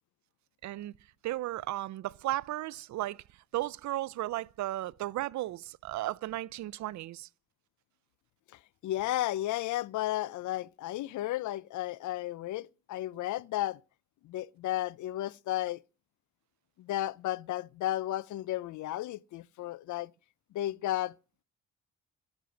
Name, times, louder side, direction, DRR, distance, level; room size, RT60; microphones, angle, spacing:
voice 1, 0.6-0.9 1.2-3.2 3.5-7.3, right 15 dB, 70° right, 0.5 m, -35 dB
voice 2, 8.8-13.8 14.2-15.8 16.8-20.1 20.5-21.1, left 14 dB, 75° left, 0.6 m, -33 dB
11.0 x 7.4 x 9.2 m
cardioid pair, 90°, 30 cm